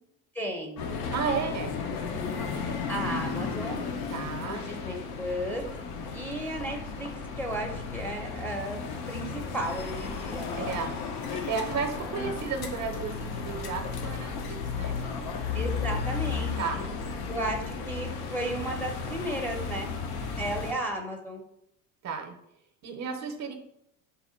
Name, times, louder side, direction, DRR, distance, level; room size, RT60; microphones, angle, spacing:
voice 1, 0.3-0.9 2.1-2.4 2.9-3.8 4.4-5.6 6.1-7.1 7.4-8.8 9.1-10.7 15.5-16.9 17.3-19.9 20.4-21.4, right 1 dB, 5° left, -1 dB, 0.7 m, -34 dB
sound 1, 0.8-20.7, left 5 dB, 55° left, 0.8 m, -34 dB
voice 2, 1.1-1.7 4.1-4.7 10.6-10.9 11.3-15.0 16.6-16.8 20.1-20.5 22.0-22.4 22.8-23.5, right 5 dB, 40° right, 5 dB, 0.7 m, -33 dB
3.8 x 2.1 x 4.3 m, 0.77 s
hypercardioid pair, 85°, 43 cm